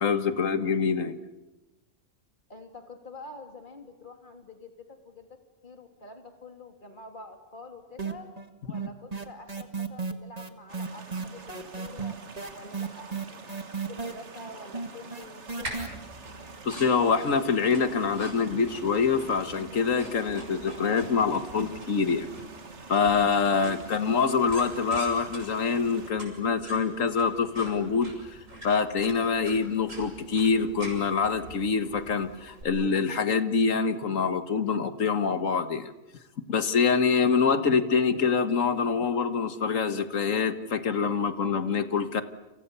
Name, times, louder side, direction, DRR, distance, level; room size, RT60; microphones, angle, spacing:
voice 1, 0.0-1.2 16.7-22.3 22.9-35.9 36.5-42.2, left 5 dB, 90° left, 10 dB, 1.8 m, -25 dB
voice 2, 2.5-5.3 5.6-8.3 8.6-12.2 12.5-15.8 23.5-23.9, left 2 dB, 40° left, 4 dB, 3.3 m, -47 dB
sound 1, 8.0-8.5 8.7-15.9, right 5 dB, 30° right, 1.8 m, -33 dB
sound 2, 10.7-26.1, right 4 dB, 65° right, 2.1 m, -47 dB
sound 3, 15.6-32.6, right 1 dB, 85° right, 6.9 m, -44 dB
30.0 x 27.5 x 7.0 m, 1.1 s
omnidirectional pair, 1.3 m